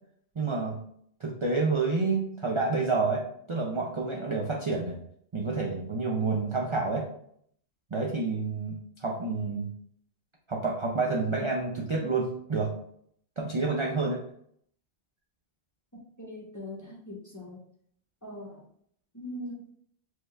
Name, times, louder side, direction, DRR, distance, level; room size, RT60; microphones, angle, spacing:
voice 1, 0.4-0.8 1.2-3.2 3.5-5.0 5.3-7.1 7.9-9.7 10.5-12.7 13.4-14.2, right 3 dB, 40° right, -1 dB, 0.4 m, -29 dB
voice 2, 16.2-17.6 18.2-18.6 19.1-19.7, left 1 dB, 20° left, -3 dB, 0.7 m, -41 dB
4.5 x 2.4 x 3.2 m, 0.66 s
omnidirectional pair, 1.1 m